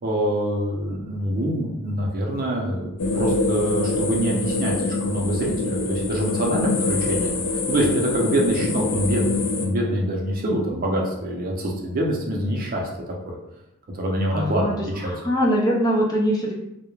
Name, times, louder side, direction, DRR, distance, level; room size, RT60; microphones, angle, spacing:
voice 1, 0.0-7.3 7.7-12.8 13.3-13.4 13.9-15.1, right 1 dB, 40° right, -1 dB, 0.5 m, -25 dB
sound 1, 3.0-9.7, left 3 dB, 80° left, 0.4 m, -25 dB
voice 2, 14.3-14.7 15.0-16.5, equal, 15° left, -2 dB, 0.3 m, -22 dB
2.3 x 2.1 x 3.0 m, 0.85 s
head